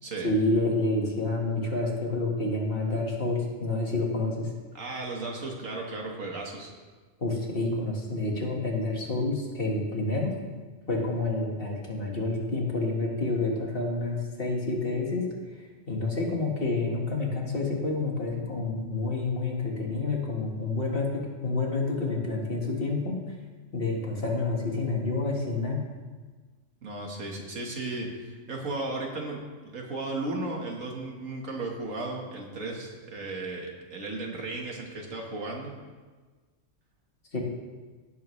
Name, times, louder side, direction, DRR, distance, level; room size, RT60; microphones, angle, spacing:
voice 1, 0.2-4.5 7.2-10.4 10.9-15.3 15.6-23.2 23.7-25.8 37.3-37.4, left 2 dB, 45° left, -1 dB, 1.9 m, -28 dB
voice 2, 4.7-6.7 26.8-29.4 29.7-35.7, right 2 dB, 90° right, 0 dB, 2.0 m, -35 dB
16.5 x 7.2 x 3.2 m, 1.4 s
omnidirectional pair, 1.3 m